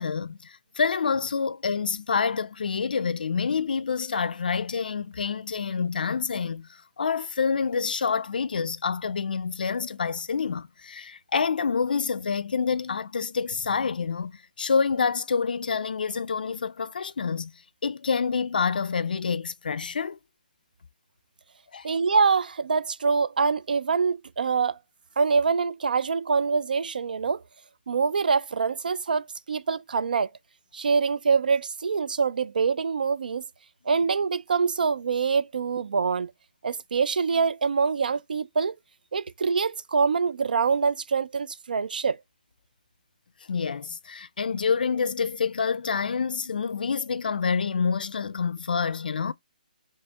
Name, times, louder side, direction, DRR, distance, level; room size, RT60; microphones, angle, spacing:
voice 1, 0.0-17.5 17.8-20.2 21.7-21.9 43.5-49.3, left 5 dB, 80° left, 0.4 m, -27 dB
voice 2, 21.8-24.8 25.2-27.4 27.9-30.3 30.7-33.4 33.9-36.3 36.6-38.7 39.1-42.2, right 5 dB, 80° right, 0.4 m, -25 dB
4.3 x 3.2 x 2.3 m
hypercardioid pair, 165°, 5 cm